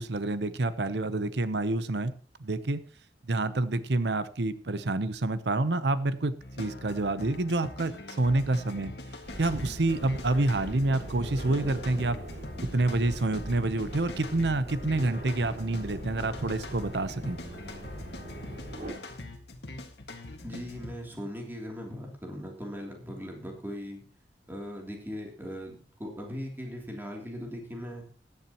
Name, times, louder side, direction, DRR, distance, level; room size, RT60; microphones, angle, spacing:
voice 1, 0.0-2.1 2.4-2.8 3.3-8.9 9.4-12.2 12.6-17.4, right 2 dB, 75° right, 14 dB, 0.8 m, -28 dB
sound 1, 6.4-20.9, left 2 dB, 65° left, 1.8 m, -43 dB
sound 2, 9.2-18.9, right 1 dB, 45° right, 4.8 m, -42 dB
voice 2, 20.4-24.0 24.5-28.1, equal, 10° right, 0 dB, 3.0 m, -39 dB
16.0 x 11.0 x 3.0 m, 0.42 s
head